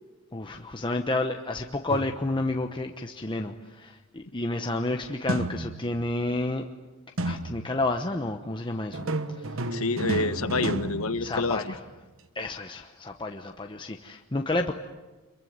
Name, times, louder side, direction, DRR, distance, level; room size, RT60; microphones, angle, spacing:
voice 1, 0.3-6.6 7.2-9.6 11.2-11.8 12.3-14.7, left 2 dB, 20° left, 4 dB, 1.0 m, -30 dB
sound 1, 1.9-2.6 5.3-6.1 7.2-7.9 8.9-11.9, right 2 dB, 65° right, 1.3 m, -32 dB
voice 2, 9.7-11.7, left 3 dB, 70° left, 11 dB, 1.4 m, -27 dB
26.5 x 23.5 x 9.5 m, 1.2 s
head